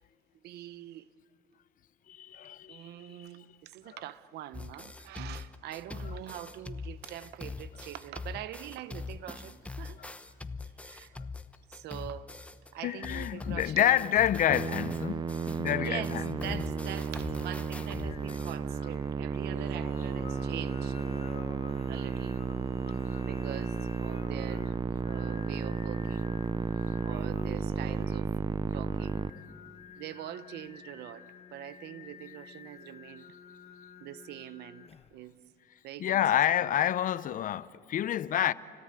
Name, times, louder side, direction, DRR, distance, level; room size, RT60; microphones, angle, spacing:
voice 1, 0.4-1.1 2.7-10.1 10.6-11.2 11.7-12.3 12.7-14.1 15.8-21.0 21.9-22.4 23.2-24.8 25.0-26.4 26.7-28.3 28.7-29.3 30.0-33.3 34.0-35.4 35.8-36.3 36.6-36.7, right 12 dB, 75° right, 0.8 m, -44 dB
voice 2, 2.1-3.3 10.0-10.1 11.1-11.2 12.8-15.3 15.6-16.6 21.1-21.3 23.1-23.3 36.0-38.5, left 11 dB, 55° left, 0.6 m, -28 dB
sound 1, 4.5-12.7 13.0-18.6, left 3 dB, 10° left, 1.0 m, -42 dB
Musical instrument, 14.5-29.3, right 5 dB, 25° right, 0.5 m, -33 dB
Singing, 15.7-35.3, left 7 dB, 35° left, 1.0 m, -50 dB
29.5 x 18.0 x 9.0 m
cardioid pair, 110°, 17 cm